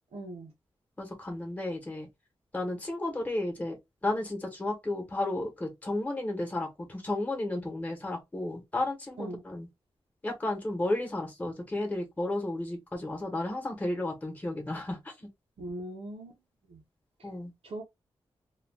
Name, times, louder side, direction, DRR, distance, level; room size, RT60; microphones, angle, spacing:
voice 1, 0.1-0.5 9.2-9.4 15.6-16.4 16.7-16.8 17.2-17.3 17.6-17.8, right 1 dB, 85° right, 0.8 m, -40 dB
voice 2, 1.0-2.1 2.5-3.8 4.0-9.7 10.2-15.3 17.2-17.5, left 2 dB, 15° left, 0.9 m, -33 dB
2.3 x 2.2 x 3.3 m
wide cardioid pair, 120°, 10 cm